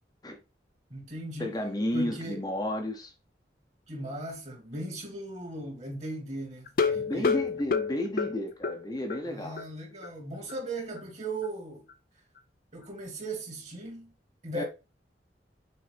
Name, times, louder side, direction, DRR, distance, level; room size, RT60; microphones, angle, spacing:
voice 1, 0.9-1.6 1.9-2.5 3.9-7.5 9.2-11.9 12.7-14.1 14.4-14.6, right 2 dB, 40° right, 2.3 m, -38 dB
voice 2, 1.4-3.1 6.9-9.6 14.5-14.6, left 1 dB, 20° left, 0.8 m, -32 dB
sound 1, 6.7-9.3 9.6-9.7 10.0-10.1 10.5-10.6, left 5 dB, 50° left, 0.5 m, -28 dB
6.6 x 4.5 x 3.4 m
head